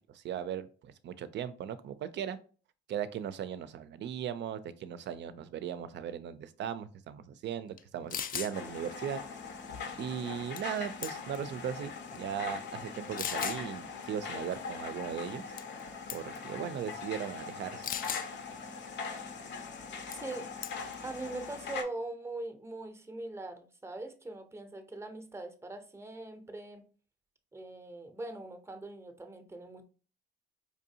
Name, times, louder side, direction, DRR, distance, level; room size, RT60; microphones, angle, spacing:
voice 1, 0.1-2.4 2.9-9.2 10.0-15.4 16.1-17.9, right 9 dB, 65° right, 0.5 m, -38 dB
sound 1, 7.8-7.9 8.1-8.5 10.6-10.8 11.0-11.4 12.1-12.2 13.2-13.6 15.6-15.8 16.1-16.4 17.8-18.3 20.1-20.3 20.6-20.9, left 8 dB, 45° left, 0.4 m, -37 dB
sound 2, 8.5-21.8, left 5 dB, 65° left, 0.8 m, -41 dB
voice 2, 21.0-26.8 27.5-29.8, right 2 dB, 15° right, 0.7 m, -41 dB
4.7 x 2.6 x 2.7 m
cardioid pair, 90°, 20 cm